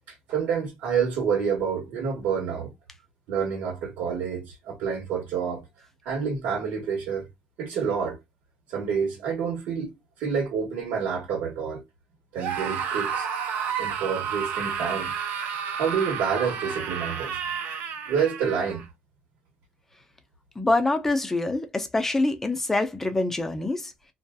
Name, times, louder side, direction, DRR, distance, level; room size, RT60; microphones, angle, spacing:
voice 1, 0.1-2.7 3.3-5.6 6.0-7.3 7.6-8.2 8.7-11.8 12.3-13.3 13.8-15.1 15.7-17.4 18.1-18.9, right 6 dB, 85° right, 1.2 m, -28 dB
Screaming, 12.4-18.8, right 7 dB, 65° right, 0.7 m, -31 dB
voice 2, 20.6-23.9, left 2 dB, 10° left, 0.5 m, -25 dB
2.7 x 2.4 x 2.2 m
cardioid pair, 160°, 3 cm